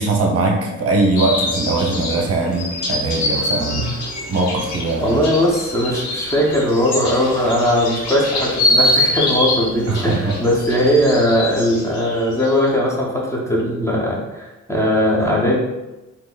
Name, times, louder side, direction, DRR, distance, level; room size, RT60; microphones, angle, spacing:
voice 1, 0.0-3.8 4.3-5.2 9.9-10.3, right 2 dB, 50° right, 0 dB, 0.7 m, -20 dB
sound 1, 1.2-12.7, left 1 dB, 90° left, 0.8 m, -24 dB
voice 2, 5.0-15.6, equal, 10° left, -3 dB, 0.6 m, -19 dB
3.7 x 2.8 x 2.3 m, 1.0 s
cardioid pair, 90°, 30 cm